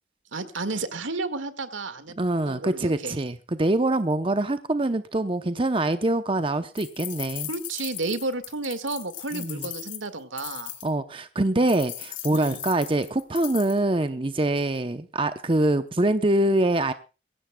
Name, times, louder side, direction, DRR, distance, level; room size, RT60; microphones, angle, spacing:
voice 1, 0.3-2.2 2.5-3.2 7.5-10.7 11.6-11.7 12.3-12.6, right 3 dB, 85° right, 10 dB, 1.9 m, -32 dB
voice 2, 2.2-7.5 9.3-9.6 10.8-16.9, right 1 dB, 25° right, 10 dB, 0.7 m, -24 dB
sound 1, 6.8-10.9 11.7-13.8, left 14 dB, 85° left, 2.7 m, -38 dB
22.0 x 16.5 x 2.3 m, 0.31 s
head